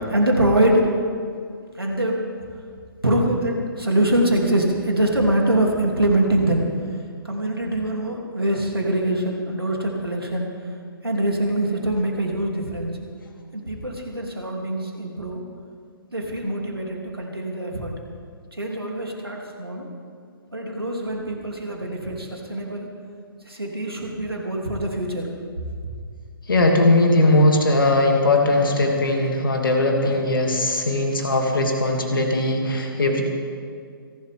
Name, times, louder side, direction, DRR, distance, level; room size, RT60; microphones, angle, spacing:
voice 1, 0.1-0.9 1.8-2.2 3.0-6.6 7.2-10.5 11.0-12.9 13.5-15.4 16.1-17.9 18.5-19.9 20.5-22.9 23.5-25.3, right 1 dB, 80° right, 0 dB, 3.2 m, -23 dB
voice 2, 26.5-33.2, left 2 dB, 65° left, 2 dB, 2.8 m, -19 dB
27.5 x 12.0 x 3.7 m, 2.2 s
figure-of-eight pair, 130°, 12 cm